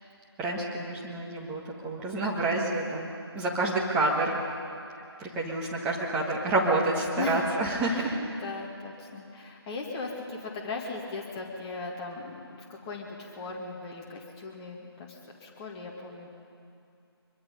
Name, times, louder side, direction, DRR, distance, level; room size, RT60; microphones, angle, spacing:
voice 1, 0.4-4.4 5.2-8.2, right 2 dB, 10° right, -3 dB, 1.7 m, -28 dB
voice 2, 7.2-7.5 7.9-16.3, left 4 dB, 15° left, -2 dB, 2.0 m, -38 dB
24.5 x 22.5 x 5.4 m, 2.5 s
figure-of-eight pair, 155°, 14 cm